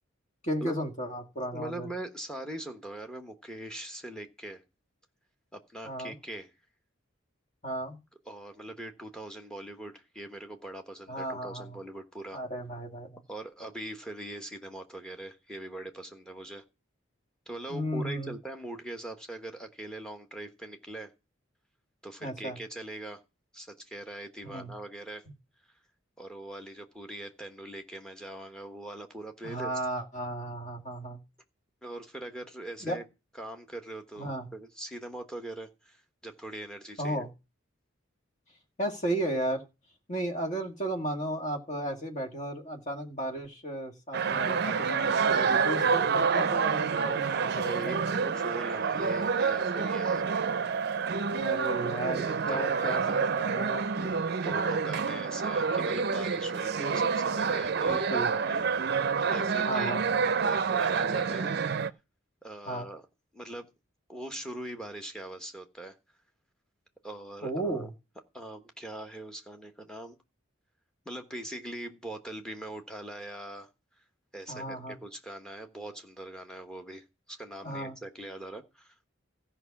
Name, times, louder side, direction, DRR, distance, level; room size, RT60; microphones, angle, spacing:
voice 1, 0.4-1.9 5.8-6.1 7.6-8.0 11.1-11.8 12.3-13.2 17.7-18.4 22.2-22.6 24.4-24.7 29.4-31.2 32.8-33.0 34.2-34.5 37.0-37.3 38.8-39.6 40.1-48.1 51.4-54.1 54.5-54.6 57.8-58.3 59.7-60.0 62.7-62.8 67.4-67.9 74.5-75.0 77.6-78.0, right 1 dB, 35° left, 3 dB, 2.0 m, -34 dB
voice 2, 1.5-4.6 5.5-6.5 8.3-12.4 13.3-16.6 17.5-21.1 22.0-23.2 23.5-25.2 26.2-29.7 31.8-33.0 33.4-37.3 47.4-50.4 51.9-53.2 54.0-58.6 58.9-59.9 60.4-61.5 62.4-63.0 63.3-63.7 64.1-66.0 67.0-67.9 68.3-70.2 71.0-73.7 74.3-79.1, right 1 dB, 5° left, 5 dB, 1.3 m, -41 dB
sound 1, 44.1-61.9, right 5 dB, 50° right, 0.5 m, -28 dB
14.5 x 5.6 x 7.2 m, 0.28 s
head